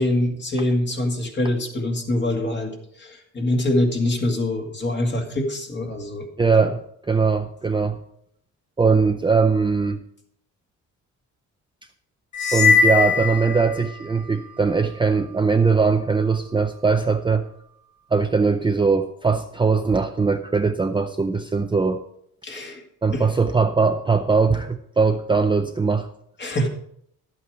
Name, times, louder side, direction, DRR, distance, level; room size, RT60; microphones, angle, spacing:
voice 1, 0.0-6.7 22.4-22.8 23.1-23.3 26.4-26.7, left 1 dB, 35° left, 3 dB, 2.1 m, -24 dB
voice 2, 6.4-6.8 7.1-8.0 8.8-10.0 12.5-17.4 18.1-22.0 23.0-26.1, right 4 dB, 15° right, 5 dB, 0.5 m, -20 dB
sound 1, 12.3-14.2, left 5 dB, 60° left, 2.0 m, -20 dB
11.0 x 8.4 x 4.9 m, 0.71 s
cardioid pair, 125°, 32 cm